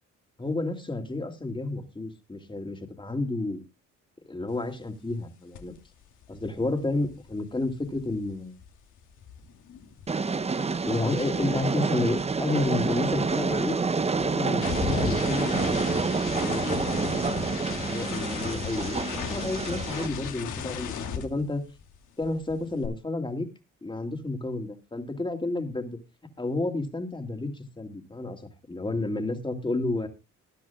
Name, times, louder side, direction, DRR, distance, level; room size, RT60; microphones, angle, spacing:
voice 1, 0.4-3.6 4.3-5.7 6.3-8.6 10.8-13.8 14.1-15.9 16.2-17.1 17.6-21.6 22.2-23.5 23.8-26.0 26.4-28.4 28.7-30.1, left 2 dB, 15° left, 6 dB, 2.5 m, -31 dB
sound 1, 5.5-5.8 6.0-10.4 10.7-22.0 22.2-22.9, left 7 dB, 80° left, 2.5 m, -36 dB
Train, 10.1-20.1, right 4 dB, 20° right, 0.7 m, -28 dB
20.5 x 10.0 x 2.3 m, 0.27 s
cardioid pair, 90°, 30 cm